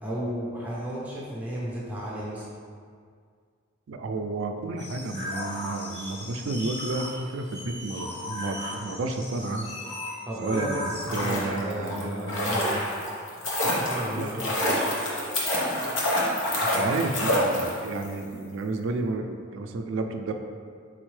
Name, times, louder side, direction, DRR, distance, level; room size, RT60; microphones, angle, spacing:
voice 1, 0.0-2.5 10.3-12.9 13.6-14.8, equal, 10° right, -7 dB, 0.6 m, -33 dB
voice 2, 3.9-9.7 10.4-12.8 14.2-14.4 16.6-20.3, right 3 dB, 75° right, 5 dB, 0.4 m, -31 dB
sound 1, 4.8-11.2, left 1 dB, 30° left, 1.1 m, -37 dB
sound 2, 10.9-18.1 18.3-18.4, left 1 dB, 75° left, 0.9 m, -27 dB
4.3 x 3.9 x 3.2 m, 2.1 s
head